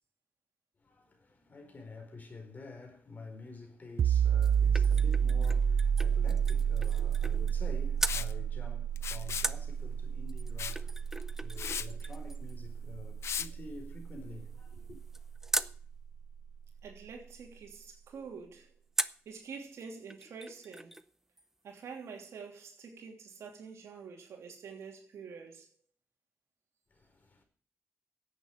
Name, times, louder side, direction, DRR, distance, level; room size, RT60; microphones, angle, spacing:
voice 1, 0.8-15.0 26.9-27.4, left 3 dB, 35° left, 4.6 m, -49 dB
sound 1, 4.0-15.4, right 7 dB, 65° right, 0.5 m, -30 dB
sound 2, 4.1-7.7 8.0-8.2 9.4-15.8 19.0-19.3 19.8-19.9 20.1-21.1 21.4-21.5, right 1 dB, 10° right, 0.6 m, -40 dB
Liquid, 8.1-8.3 9.0-9.5 10.6-10.8 11.2-11.3 11.6-11.9 13.2-13.5, left 8 dB, 70° left, 0.7 m, -36 dB
voice 2, 16.8-18.7 19.2-21.0 21.6-25.7, right 5 dB, 80° right, 2.9 m, -47 dB
10.5 x 8.4 x 9.1 m
cardioid pair, 105°, 5 cm